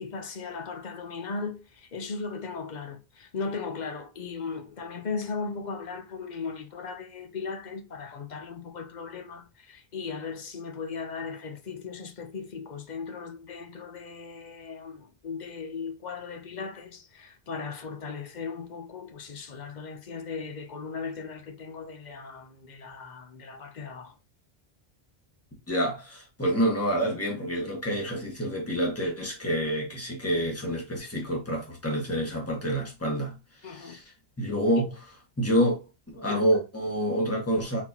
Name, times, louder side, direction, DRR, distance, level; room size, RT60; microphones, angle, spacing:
voice 1, 0.0-24.2 33.6-34.0 36.3-36.4, left 5 dB, 45° left, 0.8 m, -37 dB
voice 2, 25.7-33.3 33.6-34.0 34.4-34.9 35.4-35.8 36.1-37.8, equal, 15° left, 1.6 m, -27 dB
4.3 x 4.0 x 2.8 m
omnidirectional pair, 1.1 m